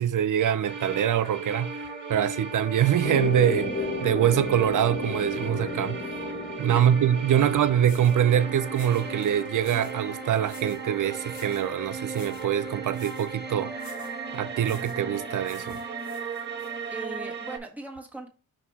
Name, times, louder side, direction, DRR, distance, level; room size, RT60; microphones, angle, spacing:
voice 1, 0.0-3.7 4.0-6.0 6.6-13.7 14.3-15.8, right 10 dB, 60° right, 0.6 m, -24 dB
sound 1, 0.7-17.6, right 4 dB, 30° right, 1.5 m, -36 dB
sound 2, 3.0-11.2, left 3 dB, 30° left, 1.5 m, -35 dB
sound 3, 7.4-7.5 7.8-8.2 8.7-10.0 10.4-10.9 11.3-11.7 12.1-12.5 12.9-13.3 13.8-14.2 14.6-15.0 15.4-16.7, left 6 dB, 85° left, 1.1 m, -51 dB
voice 2, 16.9-18.3, right 3 dB, 5° right, 1.6 m, -38 dB
5.7 x 4.7 x 3.6 m
cardioid pair, 85°, 34 cm